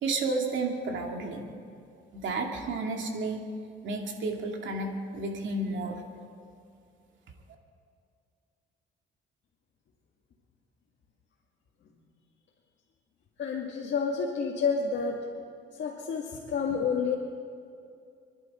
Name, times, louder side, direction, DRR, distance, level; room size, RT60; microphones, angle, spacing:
voice 1, 0.0-1.5 2.1-3.4 3.8-6.0, right 3 dB, 70° right, 2 dB, 2.5 m, -31 dB
voice 2, 13.4-15.3 15.7-17.2, left 5 dB, 65° left, -2 dB, 2.0 m, -29 dB
28.5 x 11.0 x 4.4 m, 2.4 s
cardioid pair, 90°, 20 cm